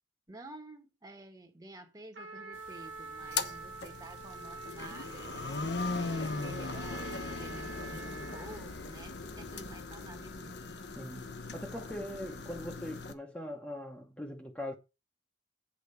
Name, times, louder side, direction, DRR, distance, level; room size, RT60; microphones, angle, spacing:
voice 1, 0.3-5.6 5.9-10.7, right 2 dB, 20° right, 1.3 m, -50 dB
Trumpet, 2.1-8.7, right 3 dB, 80° right, 1.5 m, -46 dB
sound 1, 2.5-9.8, left 3 dB, 90° left, 2.4 m, -59 dB
sound 2, 3.2-13.1, left 3 dB, 65° left, 1.0 m, -39 dB
voice 2, 10.9-14.7, left 1 dB, 5° left, 1.0 m, -41 dB
8.6 x 4.3 x 6.9 m
head